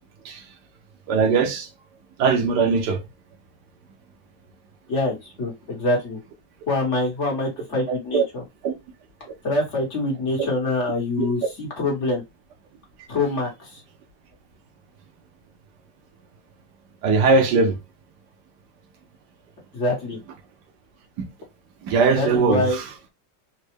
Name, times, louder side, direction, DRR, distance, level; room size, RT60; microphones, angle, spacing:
voice 1, 1.1-1.7 2.2-3.0 7.9-8.2 8.6-8.7 11.2-11.3 17.0-17.7 21.8-22.8, right 4 dB, 75° right, 1.3 m, -20 dB
voice 2, 4.9-6.2 6.7-8.4 9.4-12.2 13.1-13.8 19.7-20.2 22.1-22.8, left 2 dB, 45° left, 1.4 m, -25 dB
4.1 x 2.2 x 3.1 m
omnidirectional pair, 1.9 m